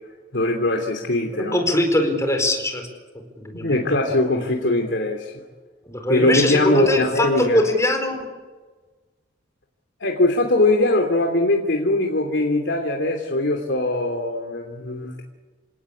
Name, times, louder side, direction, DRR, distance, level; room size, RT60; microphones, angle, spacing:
voice 1, 0.3-1.6 3.5-5.3 6.1-7.6 10.0-15.2, left 2 dB, 70° left, 2 dB, 3.0 m, -21 dB
voice 2, 1.3-2.9 3.4-3.8 5.9-8.2, left 1 dB, 15° left, 5 dB, 4.7 m, -21 dB
28.5 x 18.0 x 8.6 m, 1.3 s
head